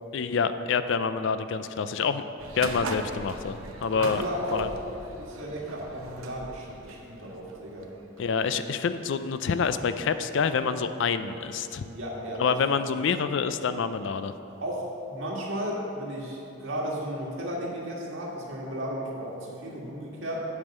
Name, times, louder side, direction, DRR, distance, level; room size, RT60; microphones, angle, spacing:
voice 1, 0.1-2.2 2.5-4.2 4.5-4.7 8.2-11.8 12.4-14.3, left 5 dB, 60° left, 11 dB, 0.4 m, -27 dB
sound 1, 2.4-8.2, right 2 dB, 90° right, 0.8 m, -40 dB
voice 2, 3.9-4.7 5.1-7.9 11.8-12.8 14.6-20.5, equal, 65° right, -3 dB, 1.8 m, -34 dB
8.1 x 5.5 x 7.1 m, 2.9 s
head